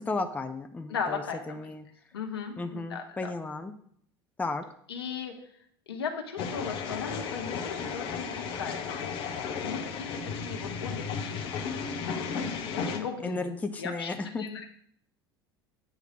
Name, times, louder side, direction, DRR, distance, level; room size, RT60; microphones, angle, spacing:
voice 1, 0.1-1.2 1.5-1.8 2.6-3.7 4.4-4.6 13.2-14.5, left 3 dB, 10° left, 7 dB, 0.6 m, -34 dB
voice 2, 0.9-1.7 2.1-3.3 4.9-5.4 5.9-11.4 11.8-13.5 13.8-14.7, left 6 dB, 75° left, 3 dB, 1.1 m, -38 dB
sound 1, 6.4-13.0, left 6 dB, 45° left, 1.0 m, -34 dB
8.4 x 3.3 x 6.3 m, 0.66 s
figure-of-eight pair, 75°, 13 cm